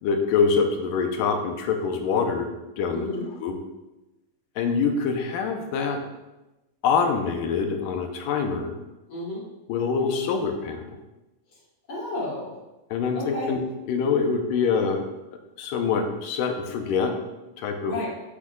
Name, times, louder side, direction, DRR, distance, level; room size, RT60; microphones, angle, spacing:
voice 1, 0.0-2.5 2.8-3.1 3.4-3.6 4.6-6.0 6.8-8.8 9.7-11.0 12.9-13.6 13.9-15.0 15.6-17.1 17.6-17.9, left 5 dB, 90° left, 4 dB, 2.4 m, -25 dB
voice 2, 2.9-3.3 9.1-9.4 11.5-11.6 11.9-12.6 13.1-13.5 17.8-18.1, left 1 dB, 60° left, -7 dB, 4.0 m, -32 dB
8.8 x 8.3 x 2.4 m, 1.0 s
omnidirectional pair, 3.8 m